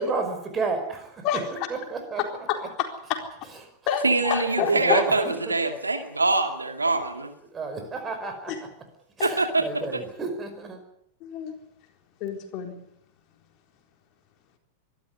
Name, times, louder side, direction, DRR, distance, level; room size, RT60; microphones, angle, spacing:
voice 1, 0.0-1.4 1.7-2.2 2.6-2.7 3.5-3.8 4.6-5.5 7.5-8.5 9.2-10.8, right 4 dB, 20° right, 7 dB, 5.4 m, -31 dB
voice 2, 2.5-3.2 3.9-5.0 9.2-9.3 11.2-11.5 12.2-12.8, left 9 dB, 40° left, 4 dB, 4.1 m, -28 dB
voice 3, 4.0-7.3 9.2-9.6, right 3 dB, 80° right, 6 dB, 2.4 m, -24 dB
24.0 x 13.0 x 9.6 m, 0.74 s
figure-of-eight pair, 90°, 0 cm